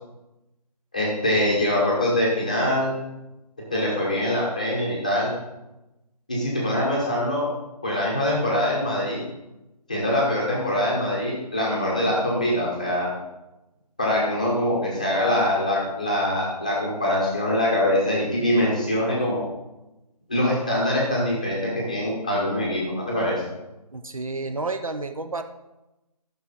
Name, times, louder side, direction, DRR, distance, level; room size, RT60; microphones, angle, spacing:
voice 1, 0.9-2.9 3.7-5.3 6.3-7.5 7.8-9.2 9.9-13.1 14.0-19.4 20.3-23.4, left 1 dB, 10° left, -4 dB, 1.0 m, -23 dB
voice 2, 23.9-25.4, right 3 dB, 55° right, 8 dB, 0.7 m, -30 dB
13.0 x 6.2 x 3.9 m, 1.0 s
figure-of-eight pair, 175°, 21 cm